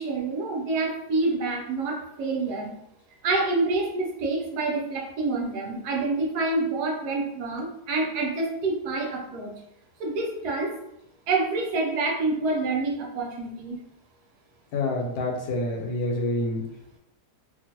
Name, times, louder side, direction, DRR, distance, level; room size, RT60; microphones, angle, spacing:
voice 1, 0.0-2.7 3.2-9.5 10.0-10.7 11.3-13.8, right 3 dB, 75° right, -1 dB, 1.2 m, -27 dB
voice 2, 14.7-16.7, left 2 dB, 80° left, 1 dB, 1.2 m, -27 dB
2.9 x 2.5 x 2.8 m, 0.80 s
omnidirectional pair, 1.8 m